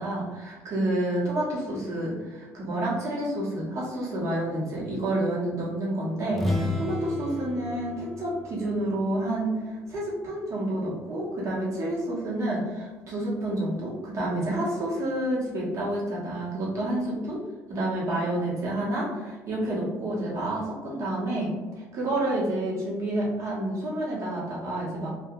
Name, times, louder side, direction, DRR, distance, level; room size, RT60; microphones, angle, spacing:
voice 1, 0.0-17.4 17.7-21.5 21.9-25.1, right 1 dB, 50° right, -5 dB, 1.0 m, -29 dB
sound 1, 6.3-10.0, left 1 dB, ahead, 0.4 m, -32 dB
2.7 x 2.3 x 2.4 m, 1.2 s
cardioid pair, 95°, 6 cm